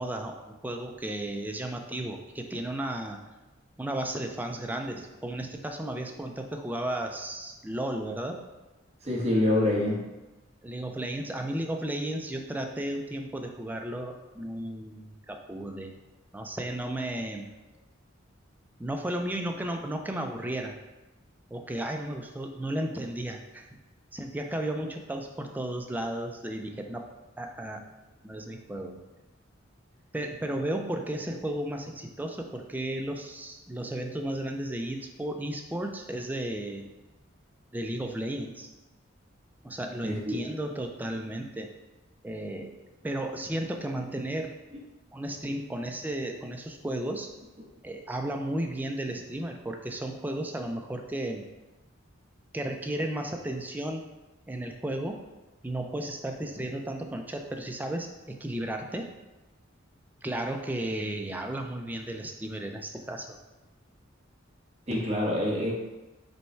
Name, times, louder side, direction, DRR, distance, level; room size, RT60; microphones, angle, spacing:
voice 1, 0.0-3.2 3.8-8.4 10.6-15.9 16.3-17.5 18.8-20.8 21.5-23.7 24.1-27.0 27.4-27.8 28.2-29.0 30.1-36.9 37.7-38.7 39.6-41.7 42.2-42.7 43.0-44.5 45.1-47.3 47.8-51.5 52.5-54.0 54.5-55.2 55.6-59.1 60.2-63.4, right 1 dB, 10° right, 3 dB, 0.4 m, -34 dB
voice 2, 9.0-10.0 40.0-40.4 64.9-65.7, left 1 dB, 35° right, -4 dB, 1.1 m, -26 dB
5.3 x 2.2 x 4.4 m, 1.1 s
head